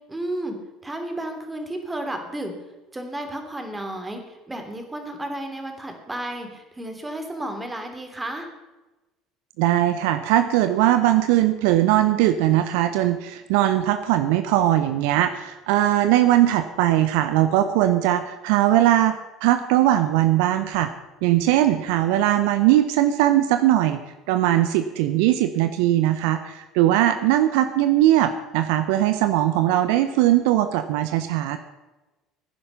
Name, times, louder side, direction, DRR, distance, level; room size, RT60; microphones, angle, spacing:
voice 1, 0.1-0.6 0.8-2.5 2.9-8.5, right 1 dB, 15° right, 5 dB, 3.1 m, -32 dB
voice 2, 9.6-20.9 21.2-24.0 24.3-31.6, right 13 dB, 70° right, 10 dB, 0.8 m, -20 dB
16.5 x 10.0 x 5.7 m, 1.1 s
hypercardioid pair, 65°, 0 cm